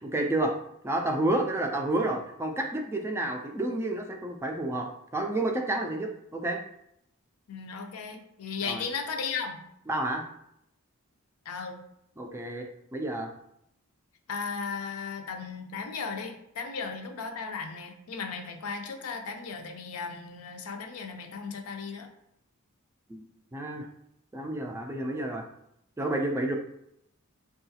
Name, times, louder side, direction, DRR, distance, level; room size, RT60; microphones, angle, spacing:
voice 1, 0.0-0.5 0.8-6.6 8.6-8.8 9.9-10.2 12.2-12.7 12.9-13.3 23.1-23.2 23.5-23.9 24.3-25.5 26.0-26.6, right 1 dB, 10° right, 2 dB, 0.3 m, -30 dB
voice 2, 7.5-9.6 11.5-11.8 14.3-22.1, left 5 dB, 75° left, 5 dB, 0.5 m, -36 dB
3.8 x 2.3 x 2.7 m, 0.76 s
head